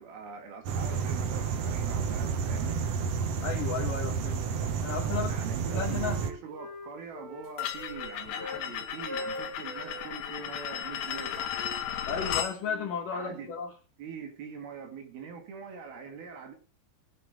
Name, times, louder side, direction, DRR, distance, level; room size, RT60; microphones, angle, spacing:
voice 1, 0.0-2.9 5.3-11.6 13.1-13.5 14.0-16.5, right 6 dB, 65° right, 3.7 m, -43 dB
sound 1, 0.6-6.3, right 6 dB, 90° right, 1.4 m, -30 dB
voice 2, 3.4-5.4 5.7-6.2 12.1-13.7, left 6 dB, 60° left, 2.7 m, -34 dB
Wind instrument woodwind instrument, 4.4-5.3 5.6-8.7 9.0-10.5 11.1-13.6, equal, 35° right, 2.9 m, -44 dB
sound 2, 7.6-12.5, left 10 dB, 85° left, 3.5 m, -35 dB
21.5 x 7.9 x 3.5 m
omnidirectional pair, 4.9 m